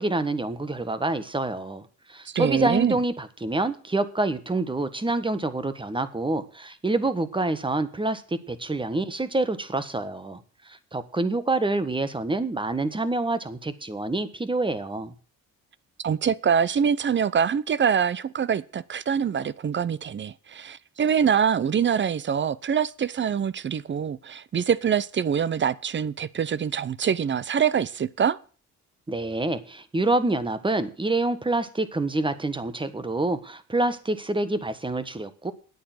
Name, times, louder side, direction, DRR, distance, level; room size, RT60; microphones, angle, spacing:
voice 1, 0.0-10.4 10.6-15.1 29.1-35.5, right 2 dB, 15° right, 1.4 m, -27 dB
voice 2, 2.3-3.0 16.0-28.4, right 7 dB, 40° right, 0.7 m, -24 dB
9.7 x 8.5 x 7.8 m
cardioid pair, 90°, 30 cm